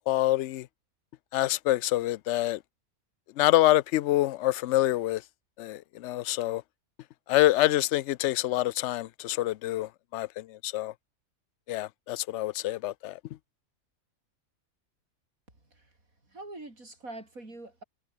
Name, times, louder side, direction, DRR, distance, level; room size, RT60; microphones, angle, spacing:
voice 1, 0.1-0.7 1.3-2.6 3.4-5.2 5.6-6.6 7.3-10.9 11.7-13.2, left 15 dB, 65° left, 0.8 m, -26 dB
voice 2, 16.3-17.8, right 2 dB, 75° right, 6.4 m, -44 dB
omnidirectional pair, 1.5 m